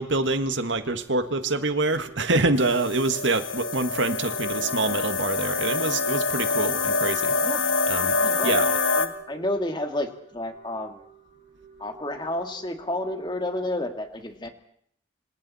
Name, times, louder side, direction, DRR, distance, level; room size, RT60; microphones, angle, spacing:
voice 1, 0.0-7.4 7.9-8.2 8.4-8.7, right 2 dB, 65° right, 8 dB, 1.8 m, -25 dB
sound 1, 1.1-13.5, right 6 dB, 60° left, 7.0 m, -51 dB
sound 2, 2.6-9.1, left 4 dB, 80° left, 2.2 m, -26 dB
voice 2, 7.4-7.7 8.1-11.0 11.8-14.5, left 1 dB, 25° left, 5 dB, 2.2 m, -31 dB
27.0 x 26.0 x 4.3 m, 0.66 s
head